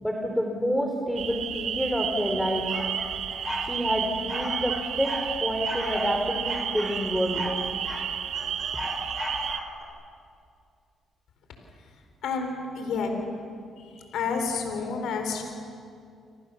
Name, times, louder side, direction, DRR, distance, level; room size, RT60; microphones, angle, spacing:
voice 1, 0.0-2.9 3.6-5.1 5.4-7.4, equal, ahead, 2 dB, 3.5 m, -28 dB
sound 1, 1.1-9.6, right 8 dB, 70° right, 1.4 m, -32 dB
sound 2, 2.7-3.7 4.3-5.3 5.6-6.1 6.5-8.1 8.3-9.8, left 1 dB, 25° left, 7.7 m, -35 dB
voice 2, 12.2-13.1 13.8-15.4, left 5 dB, 80° left, 4 dB, 4.4 m, -30 dB
29.5 x 27.0 x 7.2 m, 2.4 s
cardioid pair, 90°, 0 cm